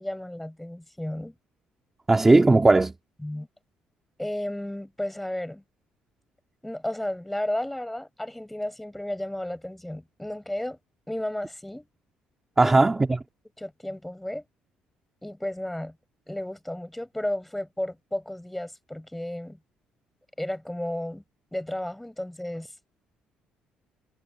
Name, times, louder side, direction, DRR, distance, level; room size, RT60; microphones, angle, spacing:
voice 1, 0.0-1.3 3.2-3.5 4.2-5.6 6.6-10.8 11.1-11.9 12.6-12.8 13.6-14.4 15.2-15.9 16.3-19.6 20.4-21.2 21.5-22.7, left 1 dB, 5° left, 7.9 m, -33 dB
voice 2, 2.1-2.9 12.6-13.2, right 2 dB, 10° right, 2.0 m, -17 dB
cardioid pair, 160°, 3 cm